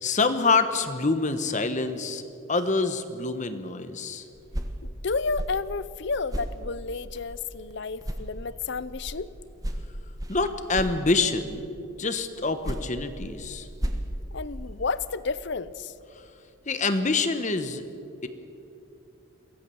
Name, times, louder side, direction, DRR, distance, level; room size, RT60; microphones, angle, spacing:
voice 1, 0.0-2.2 2.5-4.2 10.3-11.7 12.0-13.7 16.7-17.8 18.2-18.3, left 3 dB, 35° left, 10 dB, 1.0 m, -26 dB
sound 1, 4.3-7.7 8.0-11.5 12.4-15.0, equal, 15° right, 1.4 m, -36 dB
voice 2, 4.8-9.3 14.3-15.9, left 4 dB, 55° left, 17 dB, 0.6 m, -31 dB
23.0 x 16.5 x 7.0 m, 2.7 s
head